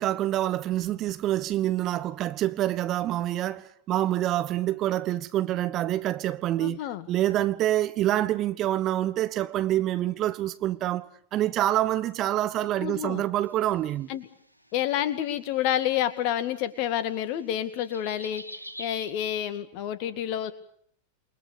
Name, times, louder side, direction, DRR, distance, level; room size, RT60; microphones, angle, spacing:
voice 1, 0.0-14.1, right 13 dB, 35° right, 1.1 m, -27 dB
voice 2, 6.6-7.1 12.8-13.3 14.1-14.3 14.7-18.5 18.8-20.5, left 11 dB, 45° left, 2.2 m, -29 dB
sound 1, 13.5-19.1, equal, 90° left, 1.5 m, -46 dB
28.5 x 22.5 x 6.9 m
figure-of-eight pair, 90°, 0 cm